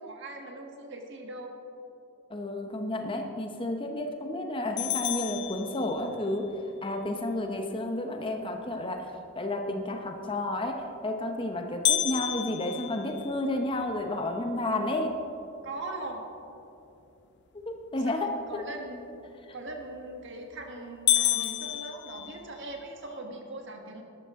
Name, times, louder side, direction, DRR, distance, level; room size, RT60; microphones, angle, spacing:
voice 1, 0.0-1.6 15.6-16.2 18.0-19.0 19.5-24.0, right 2 dB, 60° right, 2 dB, 1.5 m, -40 dB
voice 2, 2.3-6.5 6.8-15.1 17.7-18.6, left 1 dB, 25° left, 4 dB, 0.8 m, -31 dB
sound 1, 4.8-6.3 11.8-14.0 14.5-14.6 15.1-15.2 15.9-16.2 19.8-20.2 20.6-20.7 21.1-22.8, left 12 dB, 55° left, 0.6 m, -30 dB
12.5 x 12.0 x 3.7 m, 2.7 s
head